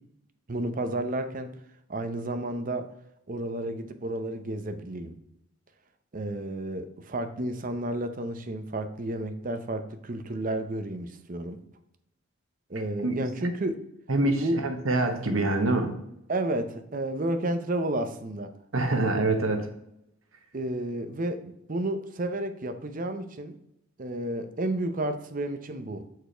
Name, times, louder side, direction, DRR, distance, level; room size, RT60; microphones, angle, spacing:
voice 1, 0.5-1.5 1.9-2.9 3.3-5.2 6.1-11.6 12.7-13.8 14.4-14.6 16.3-18.5 20.5-23.6 24.0-26.0, right 1 dB, 40° right, 9 dB, 0.7 m, -31 dB
voice 2, 14.1-16.0 18.7-19.7, right 2 dB, 85° right, 5 dB, 1.2 m, -25 dB
6.8 x 4.7 x 4.4 m, 0.80 s
head